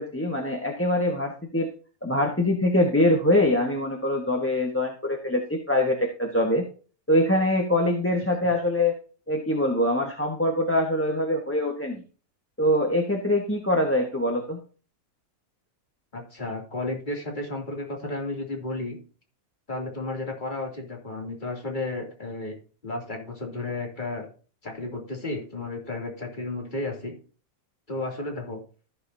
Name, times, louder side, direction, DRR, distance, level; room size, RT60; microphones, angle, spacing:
voice 1, 0.0-1.7 2.0-6.6 7.1-9.0 9.3-12.0 12.6-14.6, left 1 dB, 10° left, 1 dB, 1.3 m, -23 dB
voice 2, 16.1-19.0 19.7-22.5 22.8-24.3 24.6-27.1 27.9-28.6, left 2 dB, 35° left, 1 dB, 2.9 m, -33 dB
15.0 x 7.0 x 2.7 m, 0.38 s
omnidirectional pair, 1.5 m